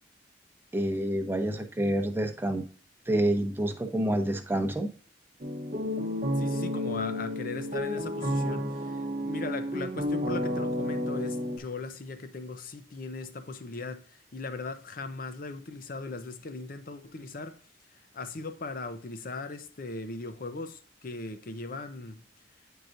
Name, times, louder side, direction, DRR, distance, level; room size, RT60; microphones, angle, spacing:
voice 1, 0.7-2.6 3.1-4.9, right 1 dB, 10° right, 0.8 m, -28 dB
sound 1, 5.4-11.6, left 1 dB, 40° right, 0.8 m, -31 dB
voice 2, 6.4-17.6 18.1-22.2, left 3 dB, 50° left, 0.7 m, -38 dB
9.1 x 4.7 x 2.6 m
head